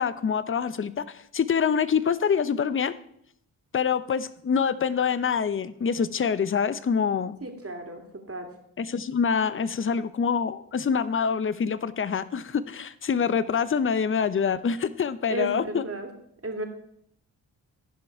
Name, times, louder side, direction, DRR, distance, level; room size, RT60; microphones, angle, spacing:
voice 1, 0.0-2.9 3.7-7.4 8.8-15.8, left 6 dB, 25° left, 16 dB, 0.6 m, -25 dB
voice 2, 7.4-8.5 15.3-16.1 16.4-16.7, right 1 dB, 30° right, 3 dB, 2.3 m, -33 dB
15.0 x 5.4 x 4.6 m, 0.72 s
supercardioid pair, 45°, 46 cm